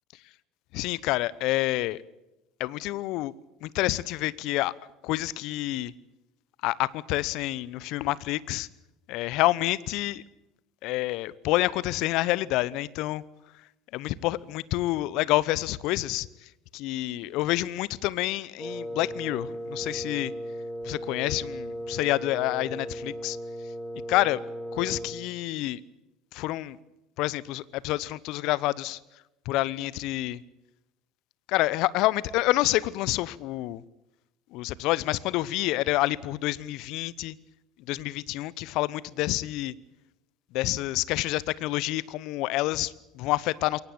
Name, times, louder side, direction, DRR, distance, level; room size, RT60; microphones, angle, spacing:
voice 1, 0.7-2.0 2.6-3.3 3.6-4.7 5.0-5.9 6.6-8.7 9.1-10.2 10.8-13.2 13.9-16.3 16.7-20.3 20.8-23.4 24.1-24.4 24.7-25.8 26.3-26.8 27.2-29.0 29.5-30.4 31.5-33.8 34.5-37.3 37.9-39.7 40.5-43.8, left 17 dB, 60° left, 21 dB, 0.8 m, -28 dB
Wind instrument woodwind instrument, 18.6-25.3, equal, 5° left, 4.2 m, -36 dB
22.5 x 18.0 x 8.8 m, 0.93 s
hypercardioid pair, 70°, 0 cm